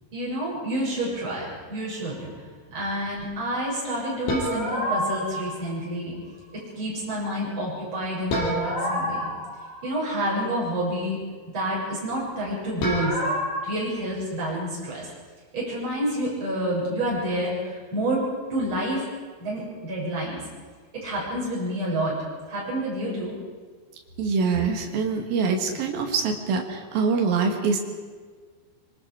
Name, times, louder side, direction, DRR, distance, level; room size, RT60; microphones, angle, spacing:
voice 1, 0.1-2.3 2.7-6.2 6.8-9.3 9.8-11.2 11.5-13.2 13.6-15.1 15.5-18.2 18.5-19.1 19.4-20.4 20.9-22.2 22.5-23.4, right 1 dB, 25° right, -6 dB, 7.9 m, -28 dB
sound 1, 4.3-5.6 8.3-10.2 12.8-13.6, left 1 dB, 80° left, 7.2 m, -28 dB
voice 2, 24.2-27.8, right 5 dB, 60° right, 2 dB, 3.7 m, -24 dB
25.5 x 23.0 x 5.0 m, 1.5 s
omnidirectional pair, 5.3 m